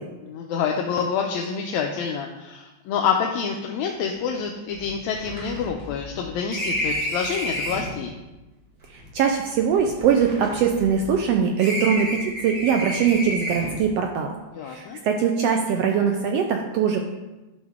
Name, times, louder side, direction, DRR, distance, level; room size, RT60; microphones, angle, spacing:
voice 1, 0.2-8.1 14.5-15.0, left 6 dB, 80° left, 1 dB, 1.9 m, -27 dB
sound 1, 3.9-4.0 4.2-4.3 4.7-8.0 8.8-11.2 11.6-13.9, equal, 35° right, 1.9 m, -31 dB
voice 2, 8.9-14.4 14.6-17.0, right 7 dB, 80° right, 3 dB, 1.5 m, -22 dB
11.0 x 6.1 x 3.6 m, 1.1 s
omnidirectional pair, 3.4 m